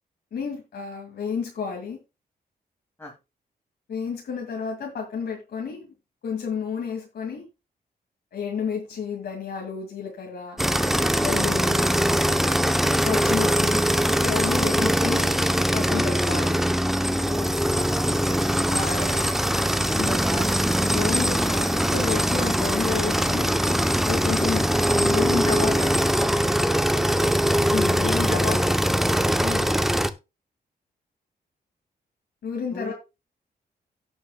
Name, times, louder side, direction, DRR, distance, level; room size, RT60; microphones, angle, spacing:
voice 1, 0.3-2.0 3.9-5.9 6.2-7.4 8.3-10.6 11.2-11.8 13.0-13.8 14.2-15.3 15.7-16.6 18.7-19.0 19.9-20.4 20.8-23.5 24.0-25.9 27.7-28.8 29.4-29.7 32.4-32.9, left 6 dB, 75° left, 0 dB, 2.3 m, -31 dB
sound 1, 10.6-30.1, equal, ahead, 0.7 m, -22 dB
voice 2, 17.2-19.2 19.8-20.6 21.1-21.2 24.2-24.3 25.4-25.9 26.5-26.9 27.2-27.3 28.1-28.6 32.7-32.9, left 1 dB, 15° left, -1 dB, 2.3 m, -37 dB
17.5 x 6.9 x 2.3 m, 0.26 s
wide cardioid pair, 120°, 17 cm